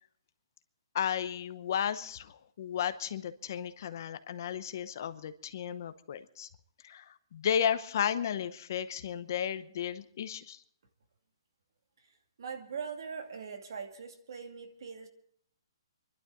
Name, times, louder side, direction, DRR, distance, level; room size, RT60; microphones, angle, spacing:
voice 1, 0.9-6.5 6.8-10.6, left 9 dB, 40° left, 11 dB, 0.8 m, -34 dB
voice 2, 12.0-15.1, right 6 dB, 55° right, 5 dB, 2.4 m, -42 dB
26.0 x 11.5 x 3.8 m, 0.66 s
hypercardioid pair, 170°, 3 cm